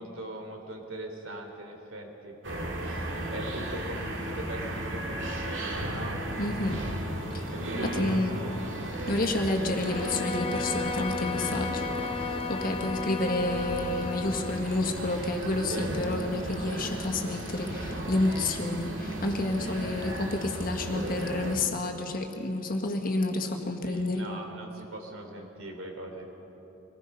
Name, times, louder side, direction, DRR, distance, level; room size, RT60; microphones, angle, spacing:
voice 1, 0.0-6.2 7.5-8.0 8.3-8.8 9.3-9.4 15.7-15.9 16.7-16.9 19.5-19.6 23.8-26.3, right 1 dB, 85° right, 2 dB, 3.4 m, -41 dB
sound 1, 2.4-21.6, right 1 dB, 65° right, 2.3 m, -35 dB
voice 2, 6.4-6.8 7.3-7.5 7.8-8.4 9.1-24.3, left 2 dB, 45° left, 3 dB, 1.7 m, -30 dB
Bowed string instrument, 9.8-14.7, left 3 dB, 25° left, 0.8 m, -34 dB
25.0 x 19.5 x 5.5 m, 3.0 s
head